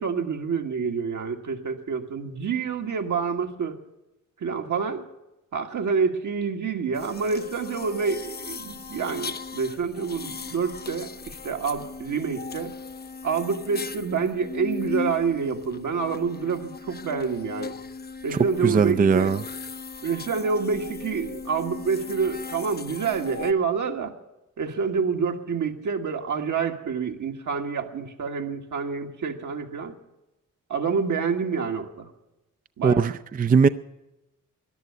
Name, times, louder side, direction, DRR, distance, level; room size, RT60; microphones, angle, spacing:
voice 1, 0.0-3.8 4.4-5.0 5.5-12.7 13.2-17.7 18.2-19.4 20.0-24.1 24.6-29.9 30.7-32.1 32.8-33.1, right 5 dB, 70° right, 1.6 m, -27 dB
sound 1, 6.9-23.5, left 4 dB, 30° left, 0.6 m, -37 dB
voice 2, 18.3-19.4 32.8-33.7, right 5 dB, 25° right, 0.5 m, -20 dB
14.0 x 10.5 x 9.5 m
cardioid pair, 60°, 32 cm